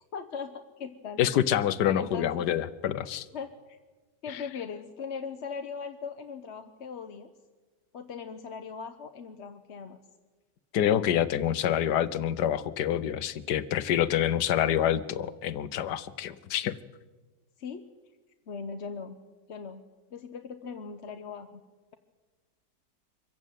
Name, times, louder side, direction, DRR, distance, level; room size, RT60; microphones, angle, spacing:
voice 1, 0.1-1.2 1.8-2.5 3.3-3.8 4.2-7.3 7.9-10.0 17.6-17.8 18.5-19.2 19.5-19.8 20.1-21.6, left 6 dB, 45° left, 7 dB, 1.0 m, -39 dB
voice 2, 1.2-3.3 4.3-4.4 10.7-16.8, left 10 dB, 70° left, 14 dB, 1.4 m, -27 dB
24.5 x 15.0 x 9.2 m, 1.3 s
omnidirectional pair, 1.9 m